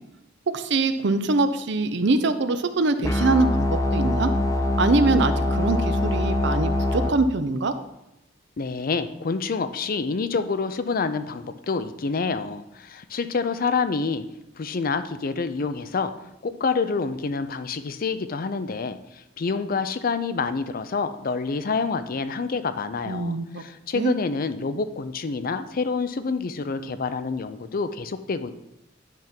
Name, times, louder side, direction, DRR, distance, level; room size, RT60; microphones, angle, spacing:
voice 1, 0.5-4.3 4.8-7.7 23.1-23.6 23.9-24.1, right 3 dB, 65° right, 10 dB, 0.6 m, -23 dB
sound 1, 3.0-7.1, left 1 dB, 15° left, 0.8 m, -23 dB
voice 2, 8.6-14.2 14.6-16.1 16.4-28.5, left 4 dB, 50° left, 11 dB, 0.5 m, -27 dB
10.5 x 3.6 x 5.8 m, 0.90 s
head